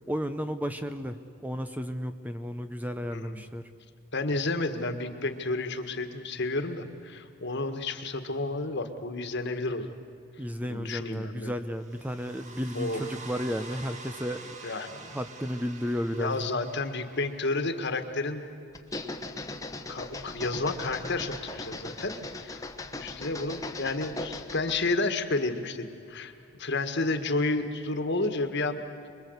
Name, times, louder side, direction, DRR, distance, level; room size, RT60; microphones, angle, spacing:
voice 1, 0.1-1.2 1.4-3.6 10.4-14.5 15.1-16.4, equal, 10° right, 8 dB, 0.7 m, -33 dB
voice 2, 3.1-3.4 4.1-10.0 10.7-11.5 12.8-13.1 14.6-15.2 16.2-18.4 19.9-22.1 22.4-22.6 23.0-26.3 26.6-29.1, left 2 dB, 55° left, 8 dB, 1.7 m, -31 dB
sound 1, 5.4-6.5 11.7-18.5, right 3 dB, 35° right, 1.9 m, -47 dB
sound 2, 18.7-24.9, left 2 dB, 15° left, 1.2 m, -39 dB
26.0 x 22.5 x 8.1 m, 2.6 s
head